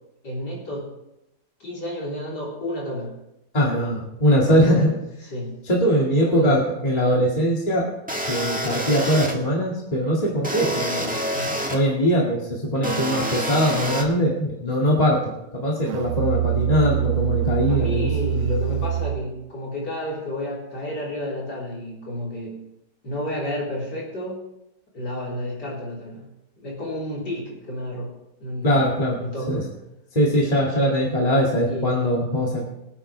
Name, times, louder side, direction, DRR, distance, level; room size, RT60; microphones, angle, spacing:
voice 1, 0.2-0.9 1.6-3.1 3.7-4.0 4.5-4.9 5.2-5.6 6.2-7.0 11.3-11.5 14.8-15.0 17.7-22.6 23.0-24.4 24.9-26.3 26.6-28.1 28.4-28.9 29.2-29.6 31.7-32.1, left 1 dB, 65° left, -5 dB, 4.6 m, -31 dB
voice 2, 3.5-4.9 5.7-7.9 8.3-11.2 11.7-15.2 15.5-18.1 28.6-29.2 29.5-29.6 30.1-32.6, equal, 20° left, -3 dB, 2.1 m, -21 dB
sound 1, 8.1-9.3 10.4-11.8 12.8-14.0, equal, 5° right, 1.3 m, -27 dB
Musical instrument, 15.8-19.4, right 12 dB, 70° right, 0.7 m, -24 dB
24.5 x 8.9 x 3.3 m, 0.89 s
omnidirectional pair, 1.9 m